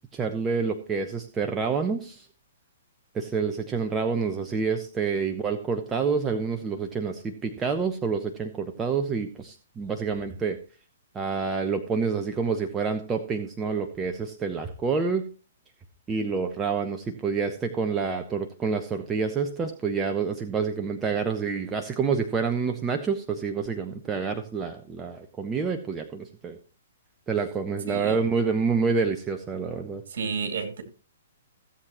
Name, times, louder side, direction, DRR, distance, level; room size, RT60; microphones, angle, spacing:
voice 1, 0.1-2.2 3.1-10.6 11.1-15.3 16.1-26.6 27.3-30.0, right 5 dB, 15° right, 5 dB, 0.9 m, -28 dB
voice 2, 27.9-28.2 30.1-30.8, right 5 dB, 60° right, 5 dB, 2.5 m, -31 dB
16.0 x 7.7 x 3.0 m, 0.37 s
figure-of-eight pair, 115°, 0 cm